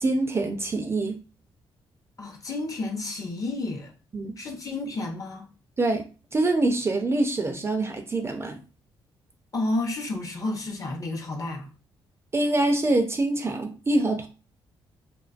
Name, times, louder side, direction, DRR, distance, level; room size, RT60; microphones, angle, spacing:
voice 1, 0.0-1.2 4.1-4.3 5.8-6.0 6.3-8.6 12.3-14.3, right 2 dB, 25° right, 0.4 m, -25 dB
voice 2, 2.2-3.9 4.4-5.5 9.5-11.7, left 2 dB, 35° left, 0.7 m, -31 dB
2.4 x 2.2 x 2.4 m
cardioid pair, 85°, 9 cm